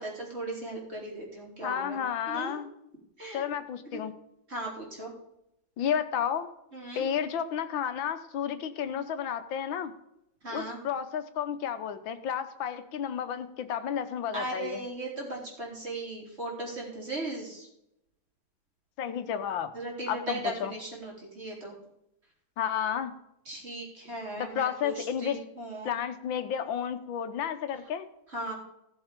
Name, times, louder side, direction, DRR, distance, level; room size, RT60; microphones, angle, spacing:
voice 1, 0.0-2.0 2.3-2.6 3.2-3.4 3.9-4.0 4.5-5.1 6.7-7.1 10.4-10.8 14.3-17.7 19.7-21.7 23.5-25.9 28.3-28.5, right 1 dB, 30° right, -2 dB, 3.9 m, -37 dB
voice 2, 1.6-2.7 3.3-4.1 5.8-6.5 7.0-9.9 10.5-14.8 19.0-19.7 20.1-20.7 22.6-23.1 24.4-25.4 25.9-28.1, left 8 dB, 75° left, 10 dB, 1.7 m, -32 dB
16.0 x 7.2 x 5.2 m, 0.81 s
omnidirectional pair, 2.2 m